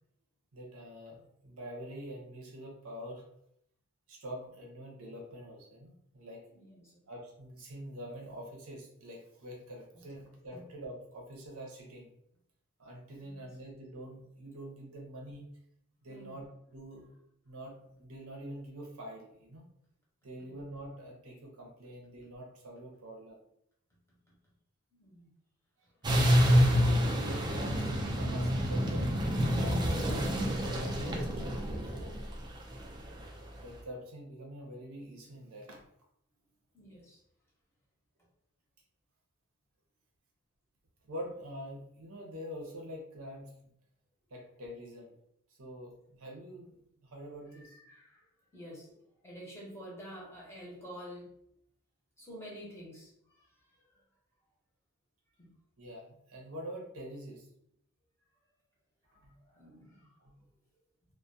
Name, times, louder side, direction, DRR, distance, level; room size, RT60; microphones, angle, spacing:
voice 1, 0.5-3.2 4.1-6.5 7.1-12.1 12.8-15.4 16.0-17.1 17.5-19.6 20.2-23.4 27.1-30.1 30.7-32.2 33.5-35.8 41.0-43.5 44.3-45.1 45.6-47.8 55.8-57.5 59.2-59.4 60.2-60.4, equal, 75° right, 0 dB, 0.7 m, -45 dB
voice 2, 6.5-7.1 9.9-10.0 10.5-10.7 13.2-13.5 16.1-16.4 20.4-20.6 24.3-24.4 24.9-25.3 36.7-37.2 47.5-48.2 48.5-48.9 49.2-51.3 52.2-53.6 53.9-54.0 55.4-55.5 59.4-60.1, equal, 10° left, -5 dB, 0.7 m, -49 dB
sound 1, 26.0-33.4, equal, 20° right, 0.3 m, -28 dB
2.2 x 2.1 x 2.6 m, 0.73 s
head